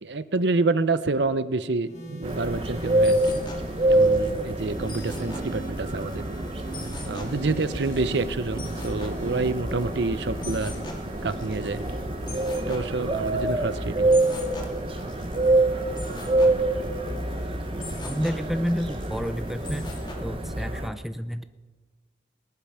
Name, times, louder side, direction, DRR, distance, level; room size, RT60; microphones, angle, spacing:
voice 1, 0.0-3.4 3.9-6.3 7.0-10.7 11.2-11.8 12.7-14.2, right 3 dB, 75° right, 14 dB, 0.7 m, -28 dB
sound 1, 1.9-18.3 19.2-19.6, right 1 dB, 40° left, 6.3 m, -44 dB
sound 2, 2.2-20.9, right 2 dB, 30° right, 1.0 m, -27 dB
sound 3, 2.3-20.1, left 1 dB, 25° left, 2.3 m, -43 dB
voice 2, 18.0-19.9 20.2-21.4, equal, ahead, 10 dB, 0.5 m, -30 dB
19.5 x 10.5 x 5.7 m, 1.3 s
head